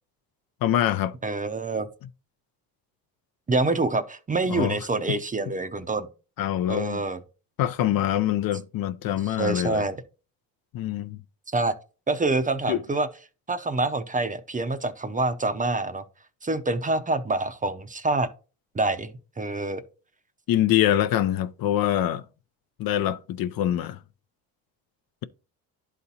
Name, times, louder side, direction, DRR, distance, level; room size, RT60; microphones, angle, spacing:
voice 1, 0.6-1.1 4.5-4.8 5.1-5.2 6.4-7.0 7.6-9.8 10.7-11.2 12.7-12.8 20.5-22.2 22.8-24.0, left 12 dB, 55° left, 0.5 m, -24 dB
voice 2, 1.2-1.9 3.5-6.1 6.7-7.2 9.2-10.0 11.5-11.7 12.1-13.1 13.5-16.0 16.4-18.3 18.7-19.8, right 3 dB, 20° right, 0.6 m, -26 dB
11.0 x 4.2 x 2.8 m
supercardioid pair, 75°, 42 cm